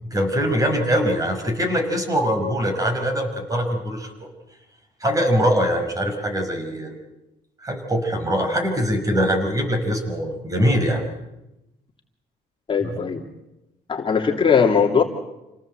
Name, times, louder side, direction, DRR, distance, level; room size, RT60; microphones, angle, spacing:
voice 1, 0.0-4.3 5.0-6.9 7.6-11.0 12.8-13.0, equal, 20° right, 5 dB, 5.6 m, -22 dB
voice 2, 12.7-13.2 13.9-15.0, left 6 dB, 30° left, 1 dB, 2.6 m, -19 dB
28.0 x 18.5 x 7.9 m, 0.95 s
cardioid pair, 110°, 17 cm